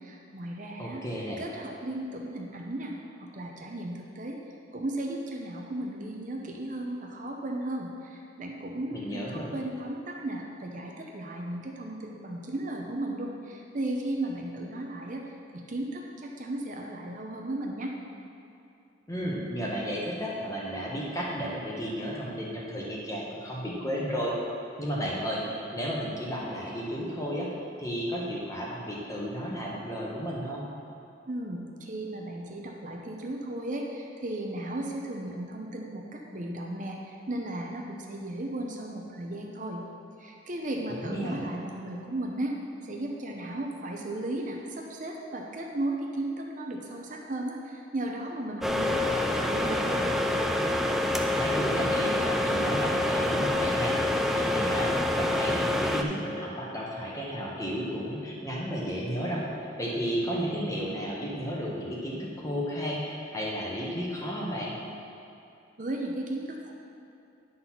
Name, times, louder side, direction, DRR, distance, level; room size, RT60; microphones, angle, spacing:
voice 1, 0.0-1.0 1.4-4.4 4.7-15.2 15.5-17.9 31.3-39.8 40.2-42.5 42.8-50.1 65.8-66.7, right 1 dB, 45° right, 0 dB, 0.7 m, -35 dB
voice 2, 0.8-1.4 8.9-9.5 19.1-24.3 24.8-27.5 27.8-30.6 40.9-41.4 51.4-59.4 59.8-64.7, equal, 15° left, -4 dB, 1.3 m, -33 dB
sound 1, 48.6-56.0, left 1 dB, ahead, 0.3 m, -26 dB
10.0 x 4.0 x 5.8 m, 2.8 s
head